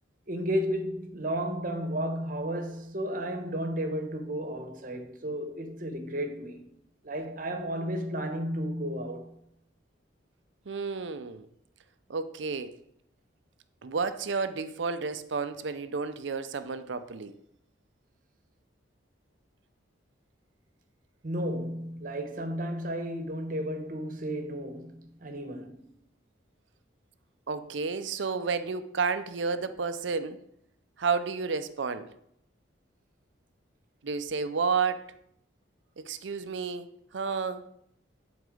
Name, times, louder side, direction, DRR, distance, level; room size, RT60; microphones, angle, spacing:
voice 1, 0.3-6.7 7.0-9.4 21.2-25.8, equal, 45° right, 1.0 m, -33 dB
voice 2, 10.7-11.5 12.1-12.7 13.8-17.3 27.5-30.4 31.0-32.1 34.0-35.1 36.0-37.6, right 5 dB, 70° right, 0.5 m, -31 dB
11.5 x 4.0 x 4.9 m
head